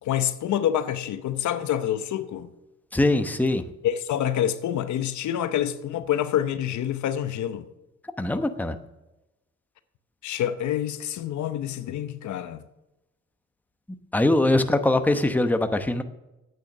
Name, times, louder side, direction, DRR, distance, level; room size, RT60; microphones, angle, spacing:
voice 1, 0.0-2.5 3.8-7.7 10.2-12.6, left 10 dB, 70° left, 0.8 m, -27 dB
voice 2, 2.9-3.6 8.2-8.8 14.1-16.0, left 2 dB, 5° left, 0.9 m, -22 dB
9.2 x 8.6 x 6.6 m
cardioid pair, 90°, 30 cm